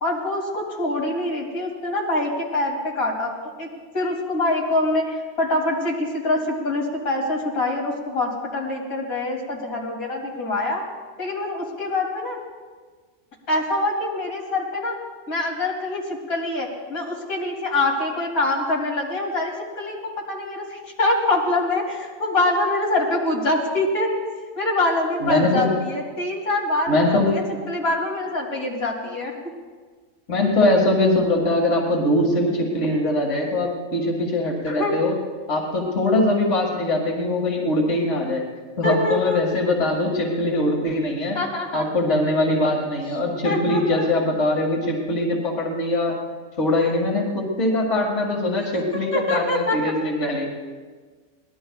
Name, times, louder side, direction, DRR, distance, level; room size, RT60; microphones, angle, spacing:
voice 1, 0.0-3.7 3.9-10.8 11.2-12.4 13.5-15.0 15.3-24.1 24.6-29.3 34.7-35.0 38.8-39.4 41.4-41.9 43.4-44.0 48.7-49.8, left 2 dB, 85° left, -3 dB, 3.4 m, -25 dB
voice 2, 25.2-25.7 26.9-27.4 30.3-35.1 35.5-38.4 38.8-41.4 41.7-46.2 46.6-50.5, left 1 dB, 55° left, -1 dB, 2.3 m, -22 dB
24.0 x 19.5 x 2.4 m, 1.4 s
omnidirectional pair, 1.5 m